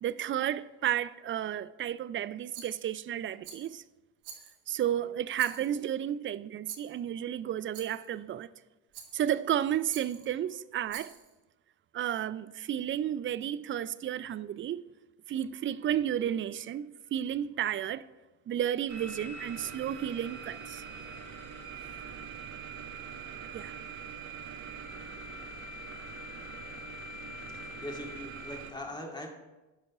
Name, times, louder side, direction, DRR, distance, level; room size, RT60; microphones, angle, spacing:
voice 1, 0.0-3.8 4.7-8.5 9.1-11.2 11.9-14.8 15.3-18.1 18.5-20.8 23.5-23.7, right 10 dB, 35° right, 0.4 m, -32 dB
Rattle, 2.5-3.0 3.4-3.8 4.2-4.8 5.3-5.9 6.7-7.0 7.7-8.1 8.9-9.4 9.9-10.3 10.9-11.3, right 7 dB, 80° right, 1.4 m, -48 dB
sound 1, 18.9-28.7, right 4 dB, 55° right, 1.3 m, -43 dB
voice 2, 27.5-29.3, left 1 dB, 10° left, 2.0 m, -41 dB
10.5 x 5.3 x 4.8 m
hypercardioid pair, 60°, 36 cm